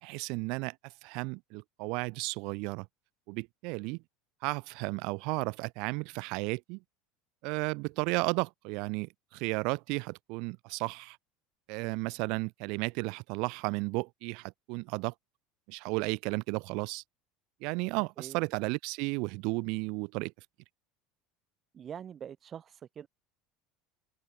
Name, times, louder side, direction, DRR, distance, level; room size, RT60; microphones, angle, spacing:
voice 1, 0.0-2.9 3.3-4.0 4.4-6.8 7.4-11.2 11.7-15.1 15.7-17.0 17.6-20.3, right 29 dB, 65° right, 2.7 m, -33 dB
voice 2, 18.2-18.5 21.7-23.1, right 8 dB, 40° right, 1.2 m, -44 dB
open air
hypercardioid pair, 80°, 0 cm